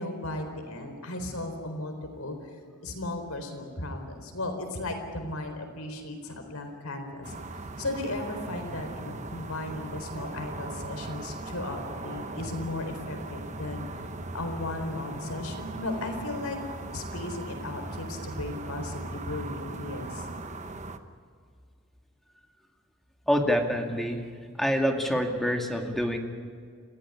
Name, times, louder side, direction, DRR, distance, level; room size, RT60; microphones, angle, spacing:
voice 1, 0.0-2.5 2.8-13.9 14.3-16.6 16.9-20.3, left 2 dB, 80° left, 5 dB, 4.1 m, -36 dB
sound 1, 7.2-21.0, right 2 dB, 35° right, 1.1 m, -39 dB
voice 2, 23.3-24.3 24.6-26.2, equal, ahead, 2 dB, 2.1 m, -26 dB
27.5 x 15.5 x 9.8 m, 2.1 s
head